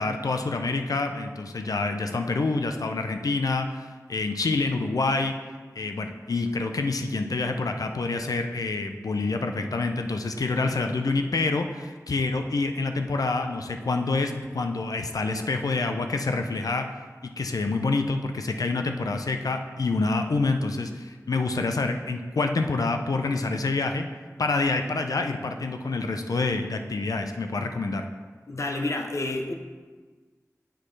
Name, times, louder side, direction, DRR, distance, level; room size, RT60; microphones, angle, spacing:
voice 1, 0.0-5.4 5.8-16.9 17.2-24.0 24.4-28.1, left 3 dB, 90° left, 6 dB, 0.5 m, -27 dB
voice 2, 28.5-29.5, left 2 dB, 55° left, 4 dB, 0.8 m, -29 dB
7.5 x 6.4 x 3.2 m, 1.4 s
wide cardioid pair, 55°, 6 cm